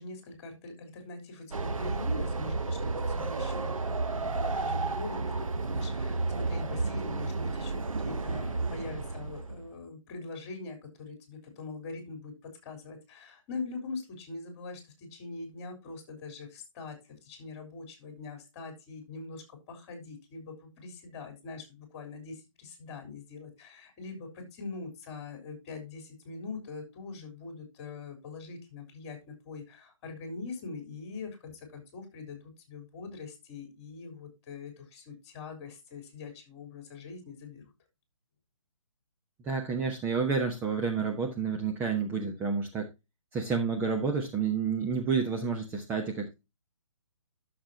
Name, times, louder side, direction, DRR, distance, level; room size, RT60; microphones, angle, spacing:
voice 1, 0.0-37.6, left 4 dB, 30° left, 5 dB, 3.7 m, -43 dB
Train, 1.5-9.7, right 3 dB, 90° right, 1.0 m, -32 dB
voice 2, 39.4-42.9 43.3-46.3, right 5 dB, 10° right, 2 dB, 1.0 m, -30 dB
12.5 x 6.8 x 2.8 m, 0.24 s
hypercardioid pair, 150°, 17 cm